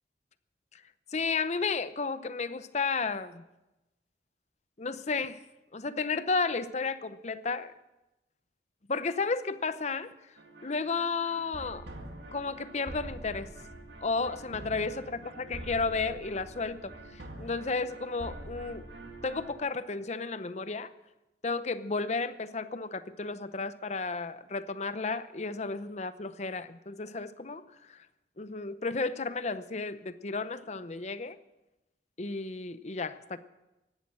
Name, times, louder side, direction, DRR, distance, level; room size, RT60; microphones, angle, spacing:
voice 1, 1.1-3.4 4.8-5.4 5.7-7.7 8.9-10.1 10.6-11.9 12.3-13.5 14.0-15.1 15.4-18.8 19.2-20.9 21.4-28.0 28.4-31.4 32.2-33.4, left 4 dB, 40° left, 13 dB, 0.7 m, -33 dB
sound 1, 10.4-19.5, right 1 dB, 80° right, 2.1 m, -45 dB
16.0 x 11.5 x 7.7 m, 0.99 s
head